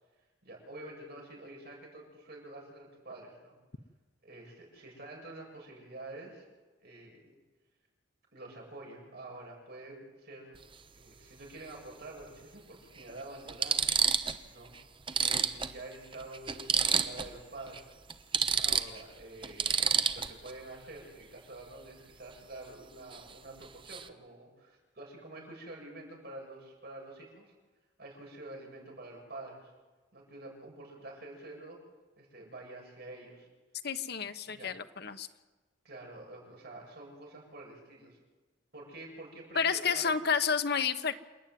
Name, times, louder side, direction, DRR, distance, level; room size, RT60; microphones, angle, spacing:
voice 1, 0.4-3.5 4.2-6.5 6.8-7.3 8.3-10.6 10.9-13.9 14.5-14.7 15.2-18.0 18.6-19.7 20.1-27.5 28.0-29.7 30.1-31.8 32.2-33.5 34.4-34.8 35.8-38.2 38.7-40.1, right 2 dB, 60° right, -1 dB, 7.7 m, -48 dB
sound 1, 10.5-10.7 12.2-12.3 13.0-13.1 13.5-14.4 14.7-14.8 15.1-17.4 17.7-17.8 18.1-20.5 23.1-23.3 23.6-24.1, right 6 dB, 30° right, 1.0 m, -29 dB
voice 2, 33.8-35.3 39.5-41.1, left 6 dB, 60° left, 10 dB, 1.1 m, -30 dB
28.0 x 11.0 x 9.3 m, 1.3 s
head